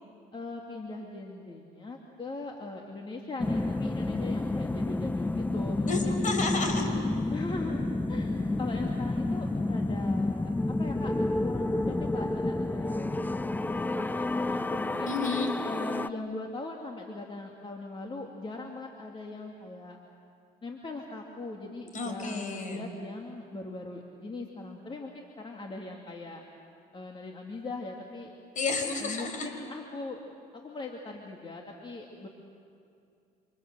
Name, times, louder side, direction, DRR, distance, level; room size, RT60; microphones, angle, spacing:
voice 1, 0.3-6.2 7.3-11.1 11.4-15.2 15.6-20.0 20.6-26.4 26.9-28.3 29.0-30.2 30.5-32.3, left 2 dB, 30° left, 1 dB, 2.5 m, -40 dB
sound 1, 3.4-16.1, left 2 dB, 10° left, 0.7 m, -30 dB
voice 2, 5.9-6.9 15.1-15.5 21.9-22.8 28.6-29.5, left 3 dB, 50° left, 5 dB, 5.3 m, -31 dB
28.5 x 27.5 x 7.7 m, 2.6 s
cardioid pair, 110°, 17 cm